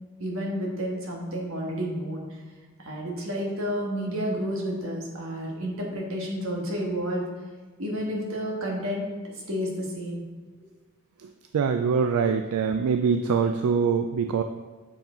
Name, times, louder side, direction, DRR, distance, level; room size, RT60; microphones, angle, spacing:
voice 1, 0.2-2.2 2.8-7.2 7.8-9.0 9.5-10.2, equal, 70° right, -2 dB, 1.5 m, -30 dB
voice 2, 11.2-14.4, right 6 dB, 90° right, 6 dB, 0.3 m, -24 dB
7.1 x 4.7 x 3.8 m, 1.3 s
head